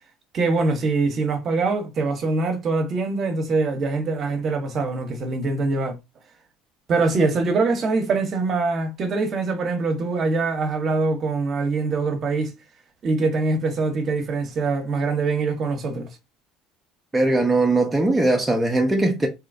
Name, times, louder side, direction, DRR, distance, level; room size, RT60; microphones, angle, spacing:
voice 1, 0.3-6.0 6.9-12.5 13.0-16.1, right 3 dB, 40° right, 0.8 m, -23 dB
voice 2, 17.1-19.3, right 2 dB, 15° right, 0.5 m, -20 dB
3.1 x 2.8 x 2.5 m
supercardioid pair, 110°, 0 cm